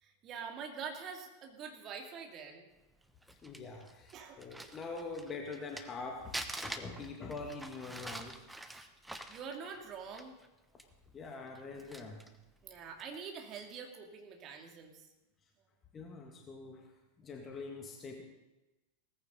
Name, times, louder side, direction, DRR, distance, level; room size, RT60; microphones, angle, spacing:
voice 1, 0.0-2.7 4.1-4.4 9.3-10.3 12.6-15.1, right 6 dB, 30° right, 3 dB, 2.4 m, -45 dB
Crumpling crinkling, 3.0-6.0 6.3-10.5 10.8-10.9 11.5-12.4 12.9-13.2, right 1 dB, 5° right, 1.0 m, -45 dB
voice 2, 3.3-8.4 11.1-12.2 15.9-16.9 17.2-18.2, left 3 dB, 25° left, 2 dB, 1.9 m, -44 dB
17.5 x 15.0 x 4.0 m, 1.0 s
figure-of-eight pair, 90°, 0 cm